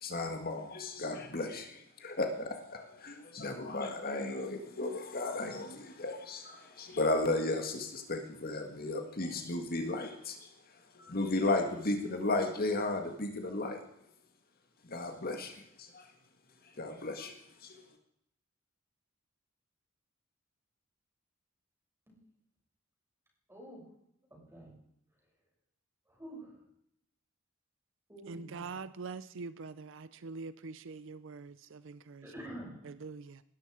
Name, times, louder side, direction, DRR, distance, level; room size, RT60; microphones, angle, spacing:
voice 1, 0.0-10.5 11.0-13.8 14.9-16.1 16.8-17.3 17.6-17.8, left 2 dB, 50° left, 1.9 m, -34 dB
voice 2, 23.5-23.8 24.3-24.8 26.1-26.6 28.1-28.7 32.2-32.8, right 1 dB, 10° right, 6.8 m, -47 dB
voice 3, 28.3-32.3 32.8-33.4, right 4 dB, 65° right, 0.6 m, -44 dB
19.5 x 13.0 x 4.9 m
head